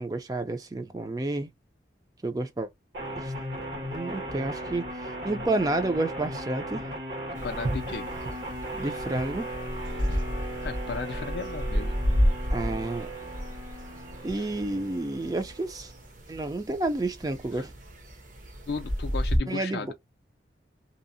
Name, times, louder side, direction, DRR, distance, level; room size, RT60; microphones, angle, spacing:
voice 1, 0.0-1.5 2.2-2.7 3.1-3.3 3.9-4.9 5.2-6.8 8.7-9.5 12.5-13.1 14.2-15.9 16.3-17.7 19.5-19.9, right 2 dB, 20° right, 0.4 m, -30 dB
sound 1, 2.9-15.9, right 1 dB, 75° right, 1.4 m, -37 dB
voice 2, 7.3-8.1 9.9-10.2 10.6-12.0 14.4-14.5 17.5-17.6 18.7-19.9, left 4 dB, 65° left, 0.3 m, -36 dB
sound 2, 7.4-19.4, equal, 45° right, 0.7 m, -32 dB
2.7 x 2.0 x 2.6 m
head